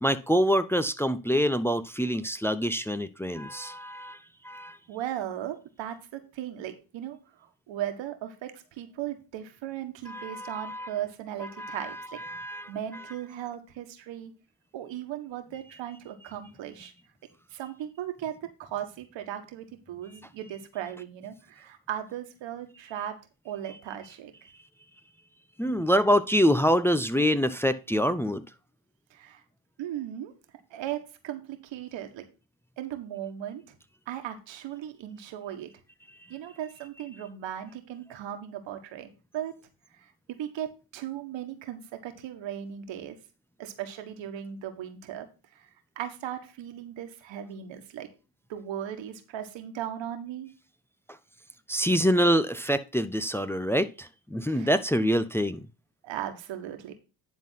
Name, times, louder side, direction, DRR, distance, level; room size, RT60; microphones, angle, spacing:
voice 1, 0.0-4.2 4.4-4.8 10.1-10.9 11.4-13.0 25.6-28.4 51.7-55.7, equal, 5° left, 0.6 m, -26 dB
voice 2, 4.9-12.2 12.7-14.3 14.7-16.9 17.5-23.2 23.4-24.3 29.1-29.4 29.8-30.3 30.7-32.3 32.8-33.8 34.1-35.7 36.3-39.5 39.9-40.1 40.4-43.2 43.6-45.3 45.5-45.7 45.9-48.1 48.5-50.5 54.5-54.7 56.0-56.9, right 11 dB, 80° right, 1.6 m, -37 dB
10.5 x 3.9 x 5.8 m
supercardioid pair, 55°, 44 cm